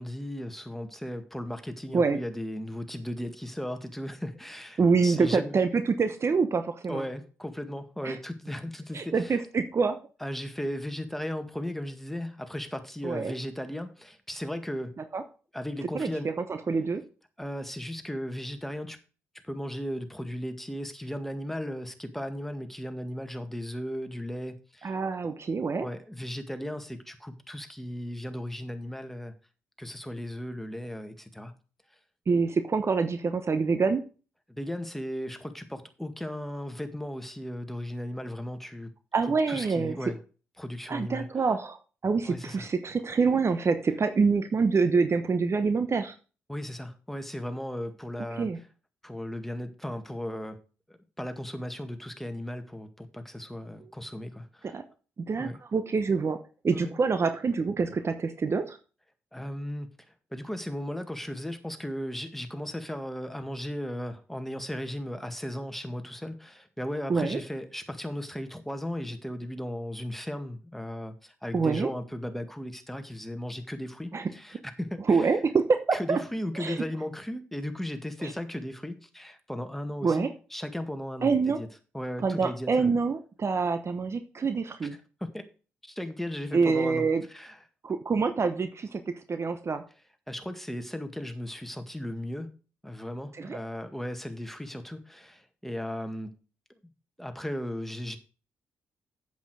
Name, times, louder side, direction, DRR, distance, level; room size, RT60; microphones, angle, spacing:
voice 1, 0.0-5.6 6.9-9.4 10.2-14.9 15.5-16.3 17.4-19.0 19.4-24.9 25.8-29.3 29.8-31.5 34.6-38.9 39.3-40.2 40.6-41.3 42.3-42.7 46.5-48.5 49.0-50.6 50.9-54.8 55.4-55.6 56.7-56.9 59.3-59.9 60.3-75.3 75.9-81.7 81.9-83.0 85.2-85.4 85.8-87.6 90.3-92.5 92.8-96.3 97.2-98.2, left 1 dB, 5° left, 1.9 m, -36 dB
voice 2, 4.8-7.0 8.0-8.2 8.9-10.0 13.0-13.4 15.1-15.2 15.9-16.1 16.5-17.0 24.8-25.9 32.3-34.0 39.1-40.0 40.9-46.1 48.4-48.6 54.6-54.9 55.3-56.4 56.6-58.8 67.1-67.4 71.5-71.9 74.1-74.3 75.1-76.2 76.6-76.8 78.2-78.3 80.0-80.3 81.2-81.6 82.2-85.0 86.5-87.2 87.8-89.8 93.4-93.6, right 4 dB, 45° right, 1.0 m, -26 dB
8.2 x 8.1 x 4.9 m
hypercardioid pair, 45°, 6 cm